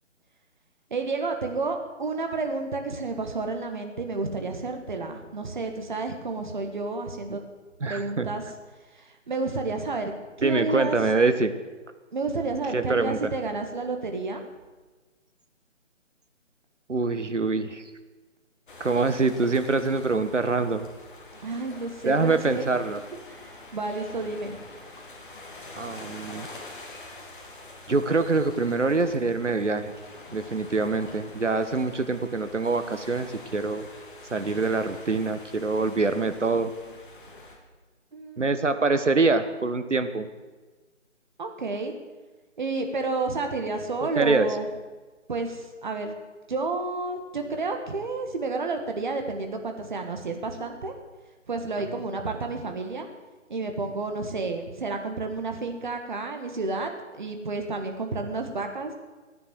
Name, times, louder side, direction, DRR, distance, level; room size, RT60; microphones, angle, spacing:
voice 1, 0.9-7.4 7.8-8.5 8.9-11.0 12.1-14.4 21.4-22.6 23.3-24.6 38.1-38.8 41.4-41.9 42.6-44.7 45.3-46.2 46.5-50.9 51.5-53.1 53.5-58.9, right 3 dB, 40° right, 5 dB, 1.7 m, -31 dB
voice 2, 7.8-8.3 10.4-11.5 12.7-13.3 16.9-17.8 18.8-20.9 22.0-23.0 25.8-26.5 27.9-29.9 30.3-33.9 34.3-36.7 38.4-40.3 44.0-44.5 51.9-52.0, right 3 dB, 70° right, 10 dB, 1.3 m, -25 dB
sound 1, 18.7-37.6, left 2 dB, 40° left, 2.6 m, -45 dB
14.0 x 9.9 x 7.9 m, 1.3 s
figure-of-eight pair, 150°, 38 cm